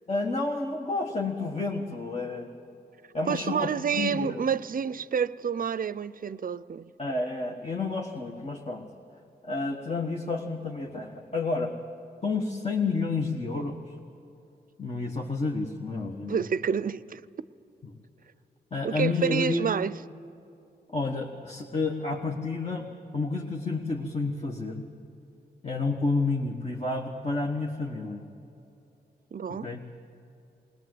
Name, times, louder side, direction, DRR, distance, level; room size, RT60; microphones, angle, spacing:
voice 1, 0.1-2.5 3.1-4.4 7.0-8.9 9.4-11.7 12.2-13.9 14.8-16.4 18.7-19.7 20.9-24.9 25.6-28.2 29.5-29.8, left 3 dB, 35° left, 1.4 m, -30 dB
voice 2, 3.3-6.9 16.3-17.2 18.8-20.0 29.3-29.7, right 7 dB, 50° right, 0.5 m, -29 dB
20.0 x 19.5 x 7.9 m
cardioid pair, 80°, 18 cm